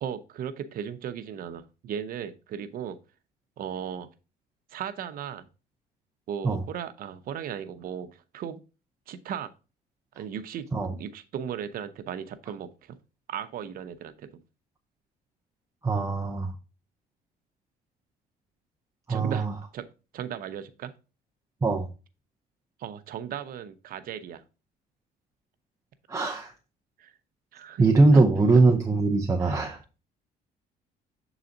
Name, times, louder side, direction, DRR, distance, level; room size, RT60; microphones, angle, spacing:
voice 1, 0.0-3.0 3.6-4.1 4.7-5.5 6.3-8.6 9.1-9.5 10.2-13.0 13.3-14.3 19.1-19.9 20.1-20.9 22.8-24.4 27.0-27.1 27.5-28.2 29.4-29.6, right 8 dB, 60° right, 11 dB, 0.7 m, -36 dB
voice 2, 15.8-16.5 19.1-19.5 21.6-21.9 26.1-26.5 27.8-29.8, right 3 dB, 15° right, 2 dB, 0.7 m, -21 dB
6.8 x 4.0 x 3.8 m, 0.32 s
cardioid pair, 110°, 17 cm